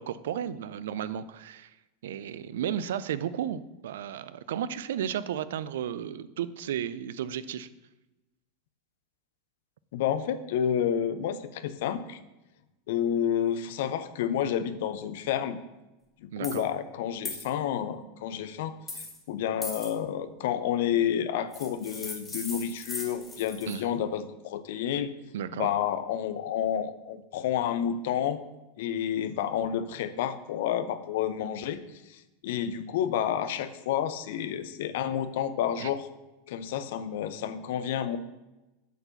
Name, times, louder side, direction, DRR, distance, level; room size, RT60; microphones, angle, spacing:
voice 1, 0.0-1.7 2.0-7.7 16.3-16.6 23.7-24.0 25.3-25.7 35.8-35.9, right 9 dB, 70° right, 16 dB, 0.4 m, -33 dB
voice 2, 9.9-12.2 12.9-15.6 16.2-25.1 25.5-28.4 28.8-31.8 32.1-36.1 36.5-38.2, left 9 dB, 65° left, 13 dB, 0.5 m, -30 dB
sound 1, 16.4-16.6 17.2-17.5 18.9-19.2 19.6-19.9 21.5-23.8, left 3 dB, 20° left, 2.3 m, -38 dB
8.2 x 4.4 x 5.7 m, 1.0 s
hypercardioid pair, 90°, 0 cm